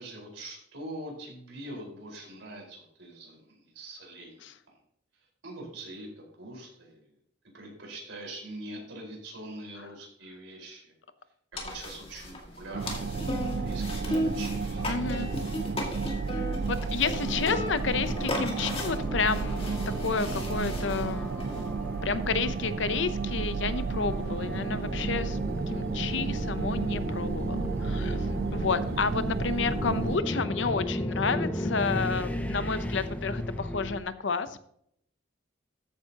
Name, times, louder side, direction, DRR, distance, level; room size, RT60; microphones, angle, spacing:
voice 1, 0.0-4.4 5.4-7.0 7.5-10.9 11.5-14.8 28.7-28.9, right 1 dB, 75° right, -1 dB, 4.8 m, -43 dB
sound 1, 11.5-21.7, left 1 dB, 30° left, 2.1 m, -36 dB
sound 2, 12.7-30.2, right 4 dB, 50° right, 0.3 m, -32 dB
voice 2, 14.9-15.3 16.3-25.4 25.7-34.6, left 4 dB, 70° left, 12 dB, 0.7 m, -31 dB
sound 3, 17.2-34.0, left 1 dB, 10° left, 0.7 m, -35 dB
13.5 x 9.1 x 2.9 m, 0.70 s
head